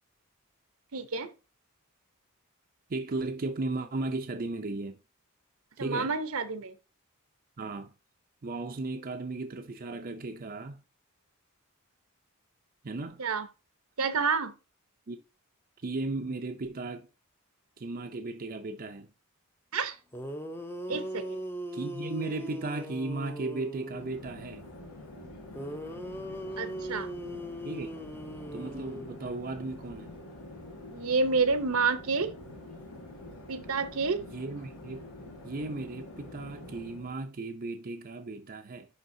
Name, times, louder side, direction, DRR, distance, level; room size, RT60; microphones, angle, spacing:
voice 1, 0.9-1.3 5.8-6.7 13.2-13.5 14.0-14.5 19.7-20.0 20.9-21.4 26.6-27.1 30.9-32.3 33.5-34.2, right 4 dB, 75° right, 0.8 m, -29 dB
voice 2, 2.9-5.0 5.8-6.1 7.6-7.9 8.4-10.8 12.8-13.2 15.1-15.2 15.8-17.1 17.8-19.1 20.9-21.0 21.7-24.6 27.6-27.9 28.5-30.2 34.3-35.0 35.4-38.9, right 2 dB, 40° right, 0.6 m, -35 dB
sound 1, 19.8-19.9 20.1-24.3 25.5-29.6, equal, 10° left, 0.6 m, -39 dB
Chatter / Fixed-wing aircraft airplane, 23.8-37.2, left 1 dB, 80° left, 2.5 m, -46 dB
10.5 x 3.4 x 2.7 m
head